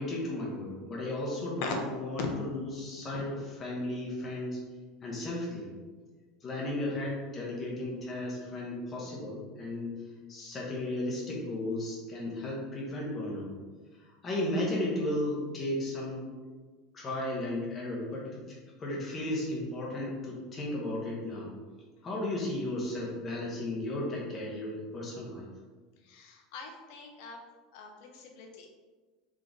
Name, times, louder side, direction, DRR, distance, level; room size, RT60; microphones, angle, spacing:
voice 1, 0.0-4.6 5.0-5.7 6.4-10.0 10.3-13.5 14.2-16.3 16.9-18.4 18.8-21.5 22.0-25.5, left 1 dB, 25° left, -3 dB, 1.1 m, -34 dB
voice 2, 26.1-27.4 27.7-28.7, left 5 dB, 65° left, 2 dB, 0.8 m, -42 dB
3.8 x 3.3 x 3.9 m, 1.4 s
supercardioid pair, 150°, 0 cm